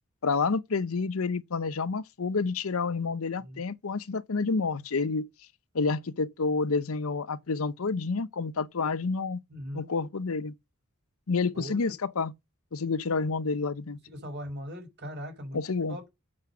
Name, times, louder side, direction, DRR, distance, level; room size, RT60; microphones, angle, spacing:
voice 1, 0.2-5.3 5.7-9.4 9.7-10.5 11.3-12.3 12.7-14.0 15.5-16.0, left 4 dB, 85° left, 0.7 m, -29 dB
voice 2, 9.5-9.9 11.5-11.8 14.1-15.6 15.9-16.1, equal, 55° right, 5.3 m, -39 dB
7.5 x 6.4 x 7.0 m
head